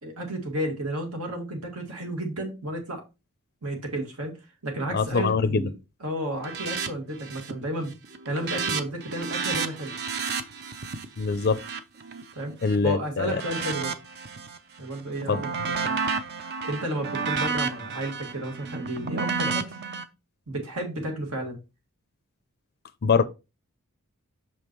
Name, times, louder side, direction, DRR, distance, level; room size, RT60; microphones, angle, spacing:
voice 1, 0.0-3.0 3.6-4.3 4.6-5.7 6.0-7.9 8.3-9.9 12.3-12.5 12.8-14.0 14.8-16.0 16.6-19.8 20.5-21.6, right 1 dB, 80° right, 2.1 m, -32 dB
voice 2, 4.9-5.7 11.2-11.6 12.6-13.4 15.3-15.4 23.0-23.2, left 4 dB, 45° left, 0.4 m, -23 dB
sound 1, 6.4-6.9 7.2-7.6 7.9-12.8 13.3-14.6 15.0-20.0, right 5 dB, 50° right, 0.6 m, -31 dB
6.1 x 5.2 x 3.0 m
head